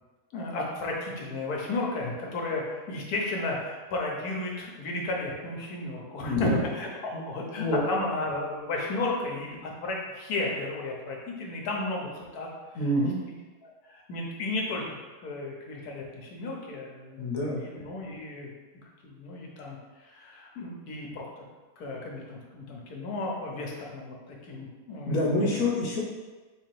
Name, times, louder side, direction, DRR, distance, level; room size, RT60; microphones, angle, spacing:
voice 1, 0.3-12.5 13.2-13.3 13.6-18.5 19.0-21.4 21.8-25.7, left 2 dB, 85° left, -1 dB, 1.4 m, -33 dB
voice 2, 6.2-6.6 7.1-7.2 7.6-7.8 12.7-13.2 17.2-17.6 25.1-26.0, left 1 dB, 65° left, -3 dB, 1.4 m, -27 dB
3.8 x 2.9 x 4.6 m, 1.3 s
omnidirectional pair, 1.6 m